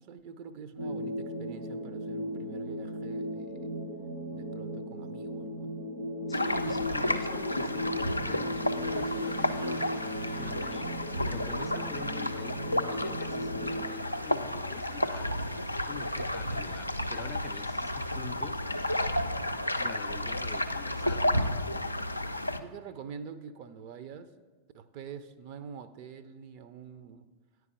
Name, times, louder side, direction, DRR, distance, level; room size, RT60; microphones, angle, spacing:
voice 1, 0.0-3.7 4.3-5.7 22.6-24.3 24.7-27.3, right 6 dB, 45° right, 11 dB, 0.5 m, -46 dB
sound 1, 0.8-13.8, equal, 65° right, 0.9 m, -36 dB
sound 2, 6.3-22.6, left 1 dB, 85° left, 0.3 m, -32 dB
voice 2, 6.3-10.9 11.2-19.0 19.7-21.5, left 5 dB, 20° left, 9 dB, 0.5 m, -46 dB
sound 3, 6.4-18.2, equal, 85° right, 1.6 m, -54 dB
9.6 x 4.7 x 6.0 m, 1.4 s
figure-of-eight pair, 90°, 0 cm